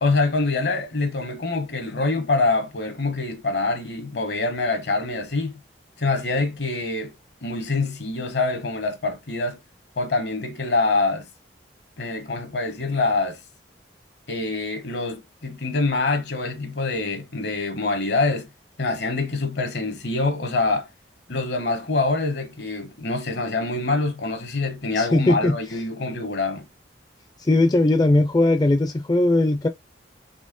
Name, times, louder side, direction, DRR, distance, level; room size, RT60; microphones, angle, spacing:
voice 1, 0.0-5.5 6.0-7.1 7.4-9.6 10.0-11.3 12.0-13.4 14.3-18.5 18.8-20.9 21.3-26.6, left 3 dB, 65° left, 1.1 m, -25 dB
voice 2, 25.0-25.6 27.5-29.7, left 2 dB, 20° left, 0.4 m, -19 dB
4.3 x 3.2 x 3.7 m
head